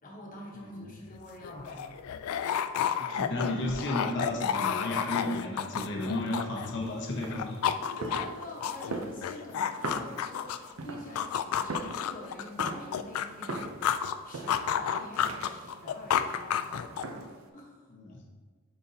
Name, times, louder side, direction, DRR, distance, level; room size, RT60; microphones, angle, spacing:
voice 1, 0.0-2.0 7.8-17.0 17.5-17.8, left 1 dB, 40° left, -2 dB, 1.1 m, -46 dB
voice 2, 0.5-0.9 3.0-7.6 17.9-18.2, left 1 dB, 55° left, 0 dB, 0.8 m, -33 dB
sound 1, 1.1-1.2 1.4-6.9 7.2-10.7 11.2-14.2 14.5-17.2, left 8 dB, 85° left, 0.3 m, -31 dB
sound 2, 6.8-17.5, right 3 dB, 80° right, 0.6 m, -42 dB
8.8 x 4.1 x 2.8 m, 1.5 s
head